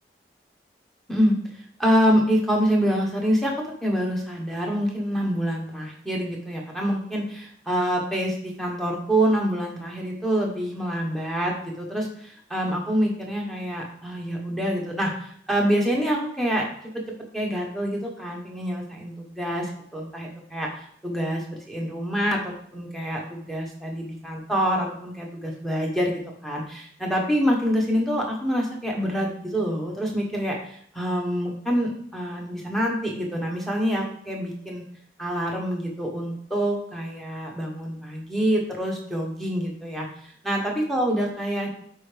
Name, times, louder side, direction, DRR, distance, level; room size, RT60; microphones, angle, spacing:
voice 1, 1.8-3.5 3.8-17.0 17.3-20.7 21.0-34.8 35.2-40.1 40.5-41.7, equal, ahead, -2 dB, 1.2 m, -26 dB
9.5 x 4.5 x 3.4 m, 0.65 s
head